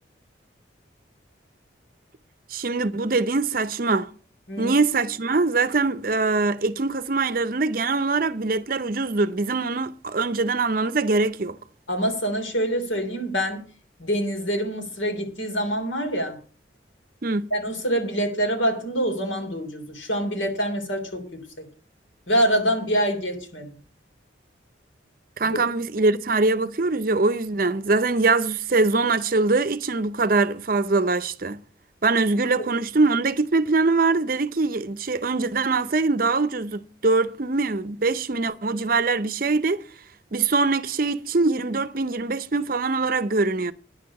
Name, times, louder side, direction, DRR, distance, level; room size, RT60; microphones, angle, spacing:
voice 1, 2.5-4.1 4.6-11.6 17.2-17.5 25.4-31.6 32.0-39.8 40.3-43.7, right 3 dB, 50° right, 0.6 m, -23 dB
voice 2, 11.9-13.6 14.0-16.4 17.5-21.4 22.3-23.7 25.4-25.6, equal, 90° left, 3.3 m, -25 dB
10.0 x 6.7 x 7.3 m
head